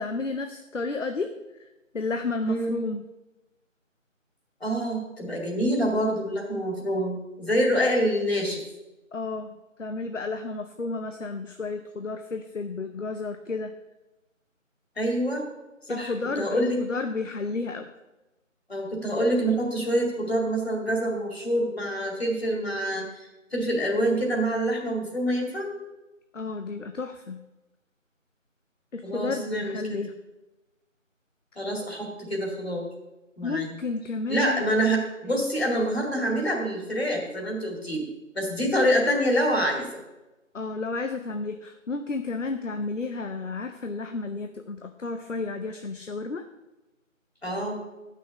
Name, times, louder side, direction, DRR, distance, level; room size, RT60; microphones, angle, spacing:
voice 1, 0.0-3.0 9.1-13.7 15.9-17.9 26.3-27.4 28.9-30.2 33.4-34.7 35.3-35.4 40.5-46.5, left 3 dB, 65° left, 7 dB, 0.8 m, -32 dB
voice 2, 2.4-2.8 4.6-8.6 15.0-15.4 15.9-16.8 18.7-25.8 29.0-29.7 31.6-32.8 33.4-33.7 34.3-38.1 38.3-39.9 47.4-47.8, equal, 50° left, 1 dB, 2.5 m, -26 dB
9.6 x 6.3 x 6.9 m, 1.0 s
figure-of-eight pair, 175°, 40 cm